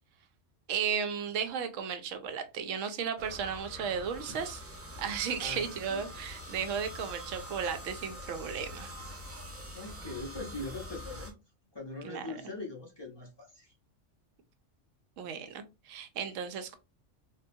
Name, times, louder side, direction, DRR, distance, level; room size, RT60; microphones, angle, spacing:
voice 1, 0.7-4.6 5.0-8.9 12.0-12.3 15.2-16.8, right 7 dB, 85° right, 0.9 m, -34 dB
sound 1, 3.2-11.3, equal, 20° right, 0.4 m, -45 dB
voice 2, 5.4-6.0 9.7-11.3 11.7-13.7, left 2 dB, 25° left, 0.7 m, -42 dB
3.6 x 2.2 x 2.6 m
omnidirectional pair, 1.3 m